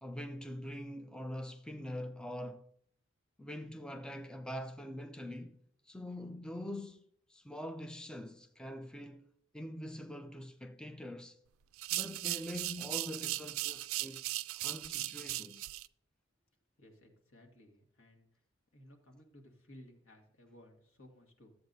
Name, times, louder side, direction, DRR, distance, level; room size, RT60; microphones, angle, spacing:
voice 1, 0.0-2.7 3.4-5.6 5.9-7.0 7.3-9.3 9.5-11.4 11.9-14.2 14.6-15.7, left 1 dB, 5° left, 0.4 m, -44 dB
sound 1, 11.7-15.9, right 17 dB, 85° right, 0.3 m, -38 dB
voice 2, 16.8-18.4 18.7-21.6, left 1 dB, 85° left, 1.9 m, -58 dB
13.0 x 7.8 x 2.7 m
head